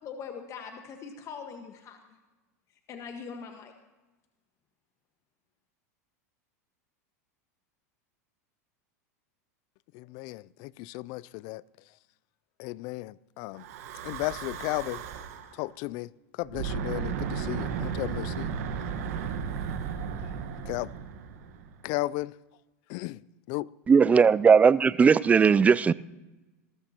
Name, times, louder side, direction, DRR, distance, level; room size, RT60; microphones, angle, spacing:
voice 1, 0.0-2.0 2.9-3.7, left 6 dB, 35° left, 1.4 m, -41 dB
voice 2, 9.9-11.6 12.6-13.6 14.0-15.0 15.5-16.1 16.4-18.5 20.7-20.9 21.8-22.4 22.9-23.2 23.5-23.7, left 19 dB, 55° left, 0.4 m, -34 dB
Breathing / Wind, 13.6-15.5 16.4-21.8, right 7 dB, 70° right, 1.4 m, -34 dB
voice 3, 23.9-25.9, right 6 dB, 15° right, 0.3 m, -18 dB
19.5 x 14.0 x 2.9 m
hypercardioid pair, 110°, 8 cm